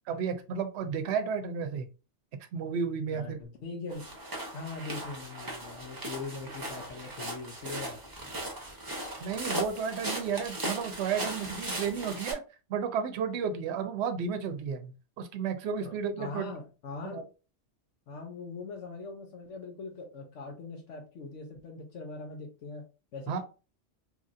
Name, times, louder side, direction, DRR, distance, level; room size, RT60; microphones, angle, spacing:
voice 1, 0.1-1.9 2.5-3.4 9.2-12.4 12.7-16.4 17.0-17.2 23.3-23.4, right 6 dB, 70° right, 7 dB, 0.8 m, -32 dB
voice 2, 3.1-4.1 4.5-8.0 15.8-17.2 18.1-22.8 23.1-23.4, left 3 dB, 80° left, 2 dB, 1.0 m, -41 dB
sound 1, 3.9-12.3, right 1 dB, 20° right, 0.7 m, -38 dB
2.9 x 2.6 x 2.4 m, 0.32 s
omnidirectional pair, 1.2 m